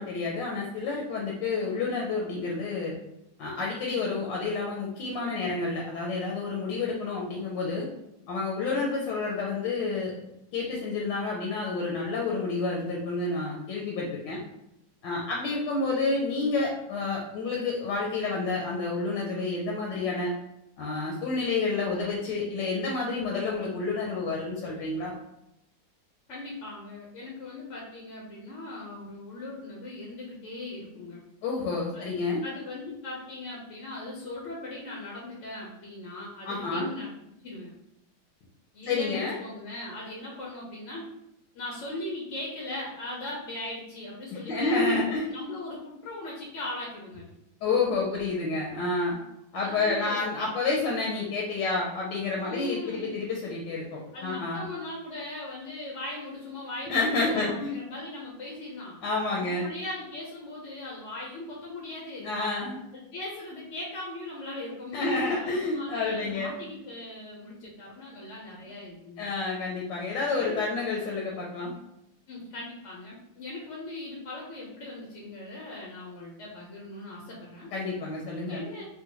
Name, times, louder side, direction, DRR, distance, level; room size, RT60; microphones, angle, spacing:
voice 1, 0.0-2.9 3.4-7.9 8.3-10.1 10.5-14.4 15.0-20.3 20.8-25.2 31.4-32.4 36.4-36.9 38.8-39.4 44.3-45.3 47.6-49.2 49.5-54.6 56.9-57.8 59.0-59.7 62.2-62.8 64.9-66.5 69.2-71.7 77.7-78.6, left 3 dB, 80° left, -2 dB, 1.3 m, -29 dB
voice 2, 26.3-31.2 31.9-32.1 32.4-37.1 37.4-37.7 38.7-41.0 41.5-47.3 49.6-50.2 52.4-53.2 54.1-62.3 62.9-69.3 70.4-70.6 72.3-77.7 78.5-78.8, left 2 dB, 65° left, -3 dB, 0.7 m, -39 dB
3.8 x 2.2 x 2.9 m, 0.83 s
omnidirectional pair, 2.0 m